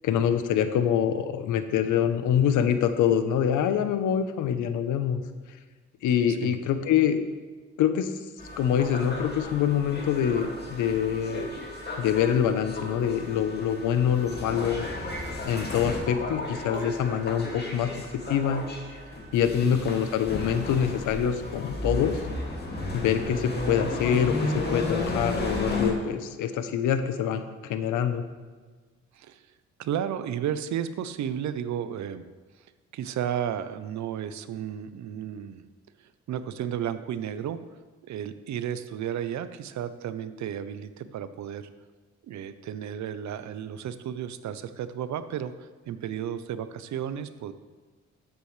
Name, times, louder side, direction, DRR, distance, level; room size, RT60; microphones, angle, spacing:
voice 1, 0.0-5.2 6.0-7.2 7.8-8.1 8.6-11.5 12.0-14.9 15.4-18.0 18.3-18.7 19.3-22.2 22.9-28.2, left 8 dB, 85° left, 10 dB, 0.9 m, -25 dB
voice 2, 6.3-6.6 19.6-20.0 29.1-29.4 29.8-32.3 32.9-35.7 36.0-37.6 38.1-41.7 42.2-47.5, right 9 dB, 65° right, 12 dB, 0.7 m, -33 dB
sound 1, 8.4-25.9, left 2 dB, 35° left, 2.3 m, -34 dB
12.5 x 8.3 x 3.3 m, 1.4 s
cardioid pair, 90°, 30 cm